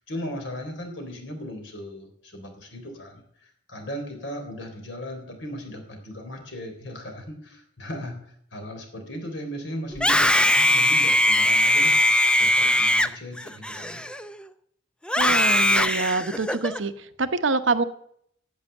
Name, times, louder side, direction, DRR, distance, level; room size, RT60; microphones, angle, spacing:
voice 1, 0.0-8.1 8.5-14.0, equal, 70° left, 4 dB, 3.6 m, -37 dB
Screaming, 9.9-14.4 15.1-16.8, left 1 dB, 5° left, 0.5 m, -20 dB
voice 2, 15.2-17.8, right 3 dB, 75° right, 11 dB, 0.9 m, -25 dB
10.5 x 8.2 x 9.3 m, 0.69 s
head